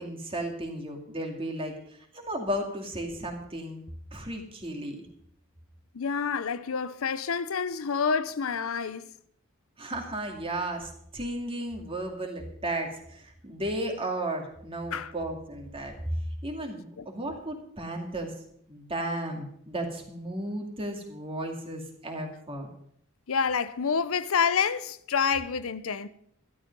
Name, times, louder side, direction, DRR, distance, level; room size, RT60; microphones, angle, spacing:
voice 1, 0.0-1.7 2.1-3.8 4.1-5.1 9.8-15.9 16.4-18.3 18.7-22.7, right 1 dB, 25° right, 2.4 m, -34 dB
voice 2, 5.9-9.1 14.9-15.1 17.0-17.1 23.3-26.1, left 6 dB, 80° left, 0.6 m, -28 dB
12.5 x 12.0 x 5.4 m
head